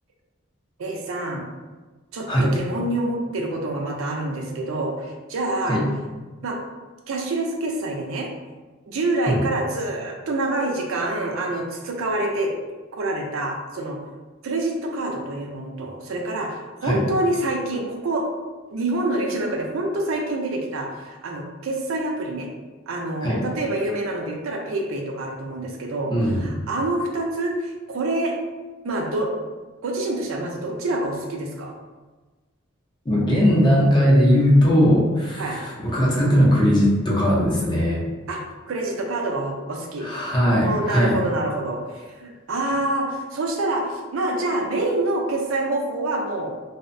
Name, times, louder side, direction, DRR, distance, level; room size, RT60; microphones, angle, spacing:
voice 1, 0.8-1.5 2.1-5.8 6.4-6.6 7.1-8.3 8.9-12.5 13.0-14.0 14.4-18.3 18.7-22.5 22.9-26.1 26.4-28.3 28.8-29.3 29.8-31.7 35.4-35.6 38.3-38.4 38.7-40.1 40.5-46.5, right 2 dB, 75° right, 1 dB, 0.4 m, -26 dB
voice 2, 26.1-26.5 33.1-38.0 40.0-41.2, equal, 20° left, -4 dB, 0.5 m, -19 dB
2.6 x 2.0 x 2.5 m, 1.3 s
head